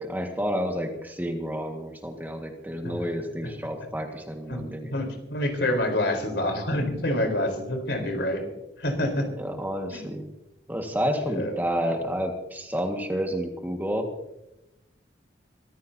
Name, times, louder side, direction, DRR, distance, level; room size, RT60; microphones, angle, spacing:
voice 1, 0.0-4.9 9.4-10.3 10.7-14.1, equal, 10° right, 3 dB, 1.7 m, -30 dB
voice 2, 4.5-8.5 8.8-9.3 9.9-10.1 11.2-11.5, left 1 dB, 75° left, 4 dB, 4.2 m, -27 dB
24.0 x 15.0 x 2.8 m, 0.89 s
head